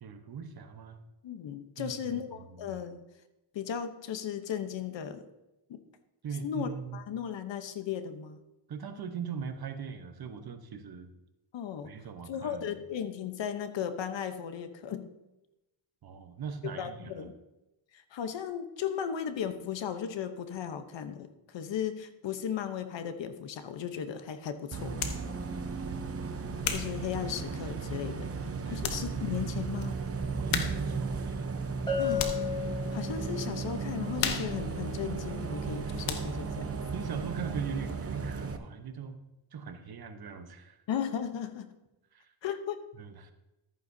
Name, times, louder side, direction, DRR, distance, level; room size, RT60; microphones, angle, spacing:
voice 1, 0.0-1.0 1.8-2.8 6.2-7.0 8.7-11.1 11.8-12.8 16.0-17.2 25.7-26.1 28.6-28.8 30.4-31.5 35.8-36.0 36.9-39.2 39.5-40.8 42.1-42.2 43.0-43.3, right 6 dB, 50° right, 8 dB, 1.1 m, -40 dB
voice 2, 1.2-3.0 3.5-5.2 5.7-5.8 6.4-8.4 11.5-11.9 12.3-15.1 16.6-17.3 17.9-25.0 26.7-28.3 28.7-30.0 32.0-32.4 32.9-36.8 40.9-41.7 42.4-42.9, left 8 dB, 60° left, 10 dB, 1.0 m, -36 dB
Bus, 24.7-38.6, right 4 dB, 30° right, 0.8 m, -35 dB
sound 1, 25.0-25.3 25.9-27.9 28.4-28.5 28.8-29.1 29.4-29.5 30.5-31.0 31.3-32.6 33.0-33.3 33.6-35.7 36.0-36.5, left 8 dB, 90° left, 1.1 m, -36 dB
Bell, 31.9-33.5, left 5 dB, 10° left, 3.7 m, -33 dB
13.5 x 9.2 x 2.7 m, 0.98 s
cardioid pair, 95°, 49 cm